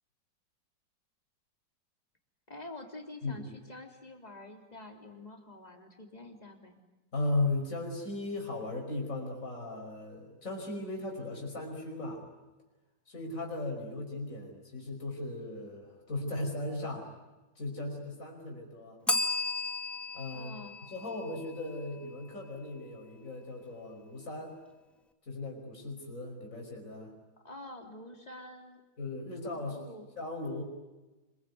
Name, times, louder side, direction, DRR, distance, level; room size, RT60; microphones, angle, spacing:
voice 1, 2.5-6.8 20.3-20.8 27.4-28.8 29.5-30.1, left 2 dB, 20° left, 4 dB, 3.5 m, -47 dB
voice 2, 7.1-12.2 13.1-17.1 17.6-19.0 20.1-20.6 20.9-24.6 25.2-27.1 29.0-29.8 30.2-30.6, left 2 dB, 45° left, 0 dB, 5.8 m, -37 dB
Bell, 19.1-21.9, left 2 dB, ahead, 1.7 m, -34 dB
26.0 x 23.0 x 9.6 m, 1.1 s
omnidirectional pair, 2.0 m